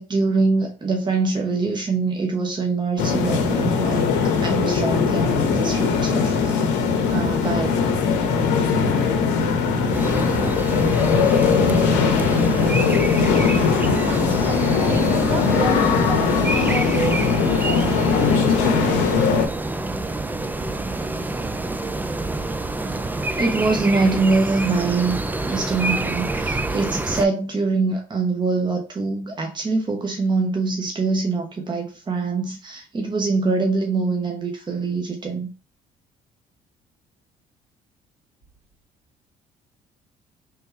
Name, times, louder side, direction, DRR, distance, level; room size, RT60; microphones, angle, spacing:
voice 1, 0.0-4.1 4.4-6.6 7.1-7.7 23.4-25.2 25.4-35.5, right 3 dB, 25° right, 0.8 m, -24 dB
sound 1, 3.0-19.5, left 5 dB, 80° left, 0.7 m, -20 dB
sound 2, 9.9-27.3, right 2 dB, 10° right, 0.4 m, -27 dB
voice 2, 13.6-19.5, right 1 dB, 65° right, 2.1 m, -30 dB
3.4 x 2.2 x 4.4 m
supercardioid pair, 65°, 18 cm